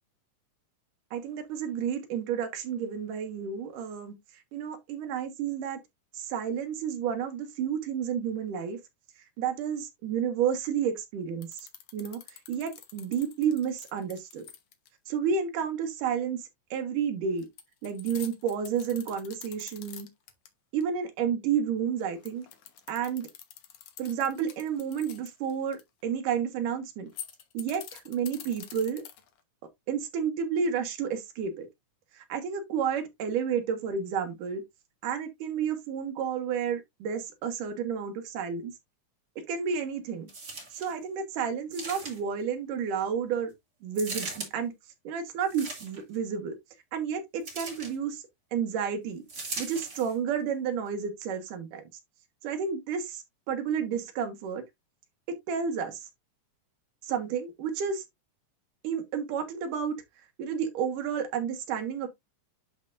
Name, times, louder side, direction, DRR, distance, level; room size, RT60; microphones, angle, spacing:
voice 1, 1.1-4.1 4.5-5.8 6.2-8.8 9.4-11.5 11.9-12.2 12.5-14.4 15.1-16.4 16.7-17.5 17.8-20.1 20.7-22.5 22.9-23.3 24.0-27.1 27.5-29.0 29.9-31.7 32.3-34.6 35.0-38.7 39.5-40.3 40.7-43.5 43.8-44.7 45.0-46.5 46.9-48.2 48.5-49.2 49.6-51.8 52.4-54.6 55.5-56.0 57.0-58.0 58.8-59.9 60.4-62.1, right 7 dB, 90° right, 2.9 m, -31 dB
sound 1, 11.4-14.9 17.4-20.5 20.8-20.9 22.0-25.8 27.0-29.4, left 10 dB, 70° left, 2.6 m, -46 dB
sound 2, 40.3-40.9 41.7-42.4 43.9-44.5 45.4-46.2 47.4-48.0 49.3-50.1 50.9-51.0, right 3 dB, 30° right, 3.2 m, -39 dB
11.0 x 4.4 x 2.5 m
omnidirectional pair, 3.6 m